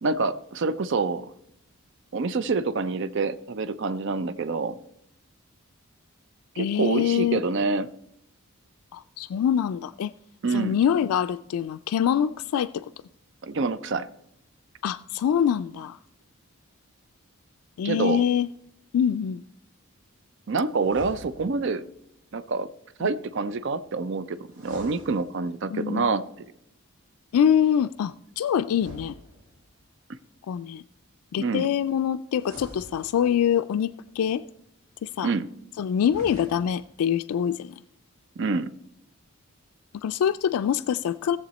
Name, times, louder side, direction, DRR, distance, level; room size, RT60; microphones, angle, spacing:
voice 1, 0.0-1.3 2.1-4.8 6.6-7.9 10.4-10.7 13.4-14.1 17.8-18.2 20.5-21.8 22.3-22.7 23.0-24.4 24.6-26.5 31.4-31.7 35.2-35.5 38.4-38.7, right 4 dB, 55° right, 0.4 m, -27 dB
voice 2, 6.6-7.4 8.9-10.1 10.5-12.9 14.8-16.0 17.8-18.5 18.9-19.4 23.0-23.1 25.7-26.1 27.3-29.1 30.5-30.8 31.3-34.4 35.0-35.3 35.8-37.8 39.9-41.4, left 8 dB, 80° left, 0.3 m, -25 dB
sound 1, 20.8-21.8 24.5-25.8 28.7-29.9 32.4-33.6 36.0-36.9, left 1 dB, 80° right, 1.6 m, -46 dB
16.5 x 7.2 x 4.1 m
head